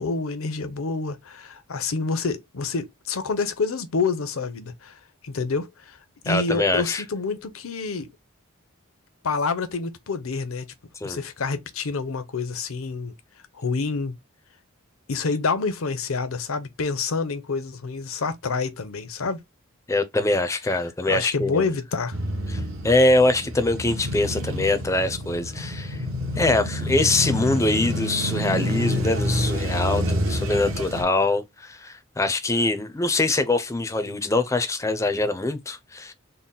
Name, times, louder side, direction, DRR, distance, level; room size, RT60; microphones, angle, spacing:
voice 1, 0.0-5.0 5.2-6.0 6.2-8.1 9.2-10.7 11.0-13.1 13.5-14.1 15.1-19.4 21.1-22.2, left 4 dB, 75° left, 0.7 m, -27 dB
voice 2, 6.3-7.0 11.0-11.2 19.9-21.7 22.5-26.0 26.4-36.1, left 2 dB, 15° left, 0.5 m, -23 dB
Male speech man speaking / Motorcycle / Idling, 22.1-31.0, equal, 70° right, 1.3 m, -28 dB
3.9 x 2.1 x 3.8 m
head